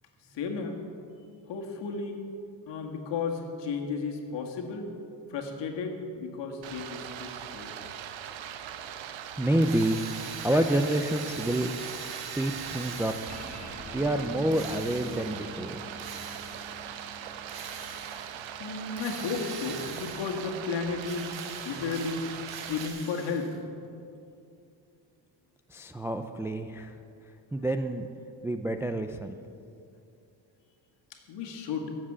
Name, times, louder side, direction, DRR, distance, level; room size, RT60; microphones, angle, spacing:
voice 1, 0.3-0.8 1.5-2.2 2.7-4.9 5.3-7.8 18.6-21.3 21.6-23.6 31.3-31.9, left 4 dB, 65° left, 2 dB, 2.1 m, -33 dB
Stream, 6.6-22.9, right 9 dB, 80° right, 1.0 m, -41 dB
voice 2, 9.4-10.0 10.4-11.7 12.1-13.1 13.9-15.8 25.7-27.0 27.5-28.1 28.4-29.4, right 1 dB, 5° right, 6 dB, 0.3 m, -28 dB
Drill, 9.6-13.8 14.5-15.5 16.0-16.8 17.5-18.4 19.0-20.6 21.0-23.6, right 6 dB, 55° right, 1.7 m, -43 dB
sound 1, 13.3-20.1, left 2 dB, 20° left, 1.5 m, -47 dB
16.5 x 7.5 x 7.4 m, 2.6 s
cardioid pair, 135°, 46 cm